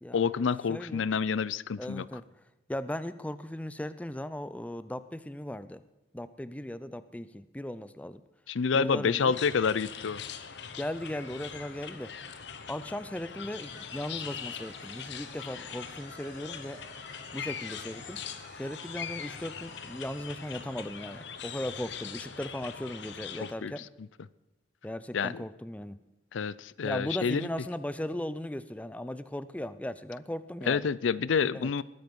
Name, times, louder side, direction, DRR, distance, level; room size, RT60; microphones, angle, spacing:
voice 1, 0.1-2.0 8.5-10.2 23.4-23.7 25.1-25.4 26.3-27.5 30.7-31.8, left 6 dB, 90° left, 19 dB, 0.5 m, -28 dB
voice 2, 0.7-1.1 1.8-2.2 2.7-5.8 6.1-8.2 8.7-9.4 10.8-12.1 12.7-16.8 17.3-18.2 18.6-23.9 24.8-26.0 26.8-30.9 31.5-31.7, left 1 dB, 5° left, 13 dB, 0.4 m, -37 dB
sound 1, 9.3-23.5, left 7 dB, 65° left, 1.0 m, -42 dB
sound 2, 13.6-21.0, left 2 dB, 40° left, 4.0 m, -52 dB
20.0 x 9.4 x 5.3 m, 1.0 s
head